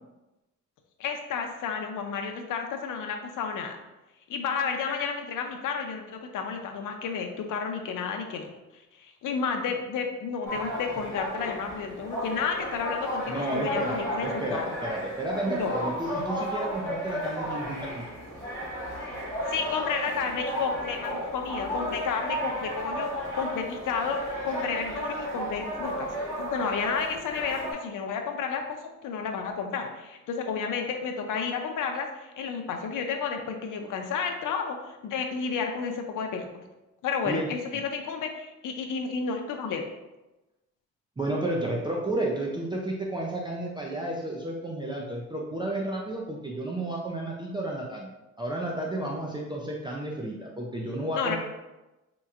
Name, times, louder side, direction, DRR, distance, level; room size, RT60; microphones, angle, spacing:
voice 1, 1.0-3.8 4.3-8.5 9.0-14.7 15.5-15.7 19.5-23.1 23.3-26.1 26.4-28.6 29.0-36.5 37.0-39.9 51.1-51.4, left 6 dB, 85° left, 4 dB, 0.5 m, -31 dB
sound 1, 10.4-27.7, equal, 10° left, 1.4 m, -33 dB
voice 2, 13.3-18.0 37.2-37.5 41.2-48.1 48.4-51.4, right 1 dB, 15° right, -3 dB, 0.4 m, -32 dB
4.2 x 2.9 x 2.4 m, 1.0 s
wide cardioid pair, 130°, 30 cm